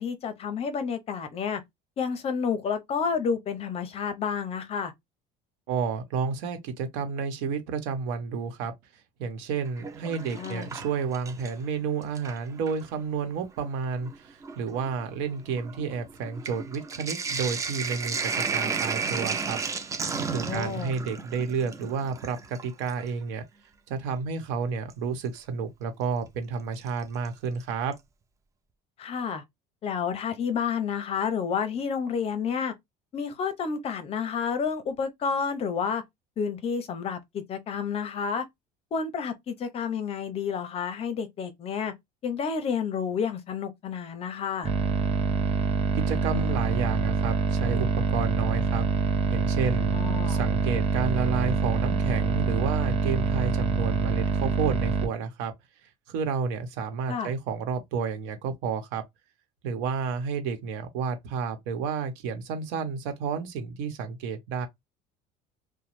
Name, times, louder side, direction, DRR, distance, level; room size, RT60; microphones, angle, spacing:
voice 1, 0.0-1.6 2.0-4.9 10.1-10.7 20.3-20.9 29.0-29.4 29.8-32.7 33.1-36.0 36.4-38.4 38.9-41.9 42.2-44.7 49.9-50.4 57.1-57.3, left 6 dB, 35° left, 0.6 m, -30 dB
voice 2, 5.7-8.7 9.2-19.6 20.3-23.4 23.9-27.9 46.1-48.9 49.3-49.9 50.3-55.5 56.1-59.0 59.6-64.7, right 5 dB, 90° right, 0.9 m, -31 dB
Sink (filling or washing), 9.6-11.7 12.0-12.8 13.6-13.7 14.0-23.1 24.9-25.0 26.8-27.3 27.6-27.7 27.9-28.0, right 5 dB, 15° right, 0.4 m, -33 dB
sound 1, 44.6-55.1, right 4 dB, 35° right, 0.8 m, -25 dB
3.0 x 2.1 x 3.1 m
cardioid pair, 150°, 19 cm